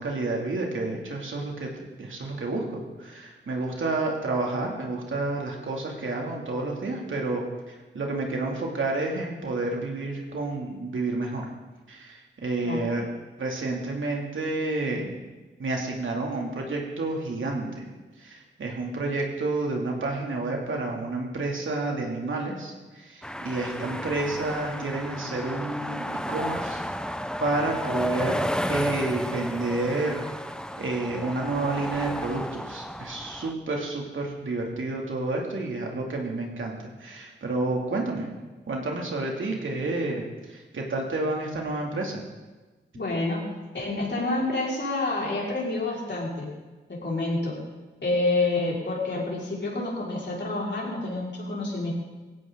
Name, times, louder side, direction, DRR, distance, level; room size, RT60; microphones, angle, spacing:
voice 1, 0.0-1.7 2.0-7.4 7.7-11.5 11.9-13.1 13.4-15.1 15.6-17.9 18.2-26.8 27.1-30.3 30.8-38.3 38.7-42.2, right 2 dB, 90° right, -1 dB, 3.0 m, -30 dB
voice 2, 12.6-12.9 42.9-43.4 43.7-46.5 46.9-47.6 48.0-51.9, left 2 dB, 65° left, -4 dB, 5.4 m, -28 dB
sound 1, 23.2-33.5, equal, 5° left, 1.0 m, -32 dB
18.0 x 16.0 x 4.1 m, 1.2 s
wide cardioid pair, 70°, 20 cm